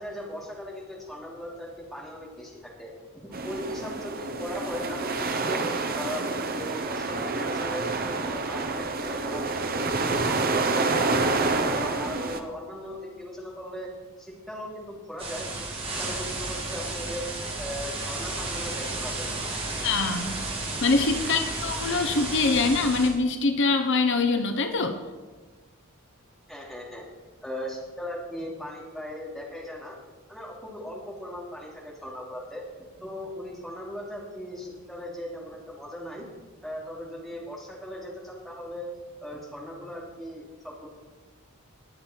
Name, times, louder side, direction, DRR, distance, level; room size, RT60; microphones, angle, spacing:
voice 1, 0.0-7.9 8.2-11.2 11.6-13.9 14.2-17.3 17.6-19.5 26.5-27.0 27.4-30.0 30.3-32.6 33.0-36.2 36.6-38.9 39.2-40.9, left 1 dB, ahead, -4 dB, 2.9 m, -38 dB
sound 1, 3.3-12.4, right 3 dB, 45° right, 1.0 m, -28 dB
sound 2, 15.2-23.1, right 2 dB, 25° right, 2.7 m, -33 dB
voice 2, 19.8-20.4 20.8-25.0, left 3 dB, 60° left, 7 dB, 0.8 m, -24 dB
21.0 x 7.4 x 4.5 m, 1.4 s
head